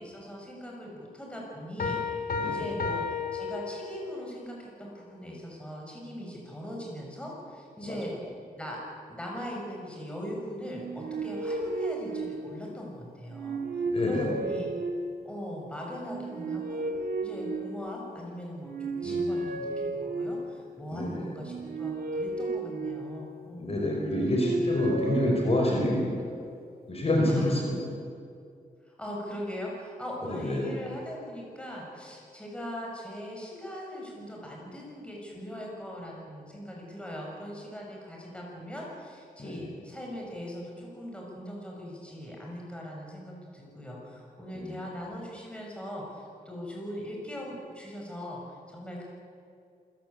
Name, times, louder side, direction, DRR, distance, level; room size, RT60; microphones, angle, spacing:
voice 1, 0.0-8.1 8.5-8.8 9.1-14.7 15.2-16.8 17.2-23.8 27.3-27.6 28.8-49.0, equal, 5° left, -2 dB, 6.6 m, -40 dB
sound 1, 1.8-4.3, left 5 dB, 65° left, 2.9 m, -32 dB
voice 2, 2.4-2.7 7.8-8.0 13.8-14.4 19.0-19.3 20.9-21.2 23.6-26.1 26.9-27.8 30.3-30.7 39.4-39.7 44.5-44.7, left 1 dB, 40° left, -1 dB, 5.0 m, -28 dB
sound 2, 10.7-12.8 13.3-15.3 16.0-18.1 18.6-20.6 21.3-23.5 24.0-26.0, right 2 dB, 75° right, 2.2 m, -33 dB
27.5 x 16.5 x 8.1 m, 2.4 s
wide cardioid pair, 125°, 16 cm